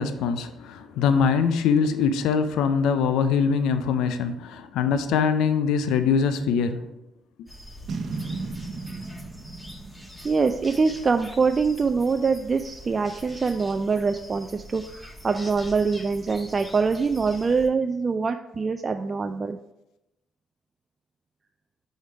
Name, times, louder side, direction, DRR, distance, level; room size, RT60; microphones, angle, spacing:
voice 1, 0.0-6.8, left 6 dB, 80° left, 0.4 m, -23 dB
sound 1, 7.5-17.7, equal, 15° left, 1.3 m, -44 dB
Boom, 7.9-11.2, right 3 dB, 60° right, 0.8 m, -35 dB
voice 2, 10.2-19.6, right 4 dB, 40° right, 0.3 m, -24 dB
4.9 x 4.2 x 4.6 m
supercardioid pair, 55°, 0 cm